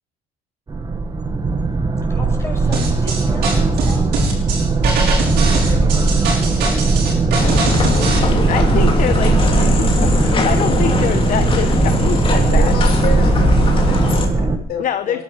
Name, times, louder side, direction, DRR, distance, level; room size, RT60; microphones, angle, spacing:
sound 1, 0.7-14.6, right 3 dB, 25° right, 1.7 m, -17 dB
voice 1, 2.1-4.3 5.2-6.2 6.6-7.9, left 2 dB, 15° left, -1 dB, 6.7 m, -37 dB
sound 2, 2.7-8.2, right 3 dB, 75° right, 6.2 m, -22 dB
sound 3, 7.4-14.3, left 4 dB, 30° left, 3.1 m, -21 dB
voice 2, 8.5-12.7 14.8-15.2, left 9 dB, 50° left, 8 dB, 1.0 m, -24 dB
voice 3, 12.5-15.2, left 6 dB, 75° left, 3 dB, 4.1 m, -29 dB
21.0 x 11.5 x 5.1 m, 0.77 s
cardioid pair, 110°, 17 cm